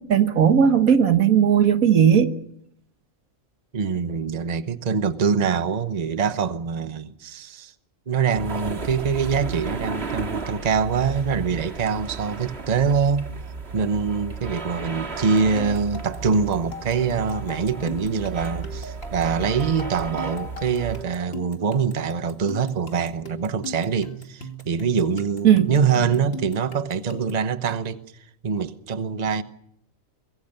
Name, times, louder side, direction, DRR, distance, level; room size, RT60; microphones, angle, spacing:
voice 1, 0.1-2.3 25.4-25.7, right 8 dB, 85° right, 1.8 m, -16 dB
voice 2, 3.7-7.7 8.1-13.3 13.7-28.0 28.4-29.4, right 6 dB, 35° right, 1.0 m, -24 dB
sound 1, 8.3-21.0, right 4 dB, 50° right, 2.0 m, -34 dB
sound 2, 15.2-27.5, left 1 dB, 45° left, 2.5 m, -39 dB
24.0 x 22.0 x 6.7 m
omnidirectional pair, 1.4 m